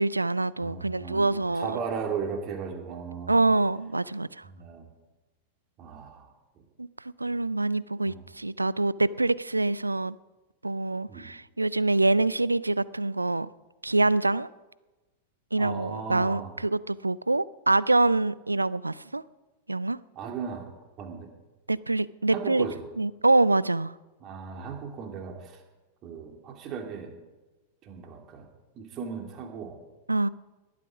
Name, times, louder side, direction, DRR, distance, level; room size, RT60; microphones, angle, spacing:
voice 1, 0.0-1.8 3.3-4.5 6.8-10.2 10.6-13.5 13.8-14.5 15.5-19.2 19.7-20.0 21.7-22.7 23.0-23.9 30.1-30.3, right 2 dB, 85° right, 0.4 m, -25 dB
voice 2, 0.6-3.5 4.4-4.9 5.8-6.3 6.6-6.7 8.0-8.3 11.1-11.3 15.6-16.5 20.1-20.7 21.0-21.3 22.3-22.8 24.2-25.6 26.0-27.1 27.8-28.5 28.7-29.8, right 6 dB, 35° right, 2.9 m, -36 dB
19.0 x 13.0 x 5.0 m
figure-of-eight pair, 90°, 0 cm